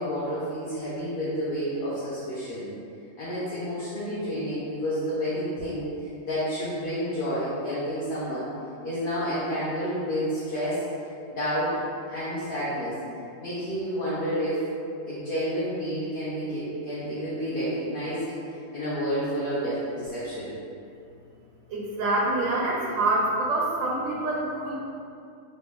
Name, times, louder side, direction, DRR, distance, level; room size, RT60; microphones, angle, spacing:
voice 1, 0.0-2.6 3.2-8.5 8.8-13.0 13.4-14.6 15.1-20.5, equal, 45° left, -12 dB, 0.9 m, -30 dB
voice 2, 21.7-24.7, right 2 dB, 85° right, -3 dB, 1.0 m, -26 dB
3.1 x 2.8 x 3.5 m, 2.5 s
omnidirectional pair, 1.4 m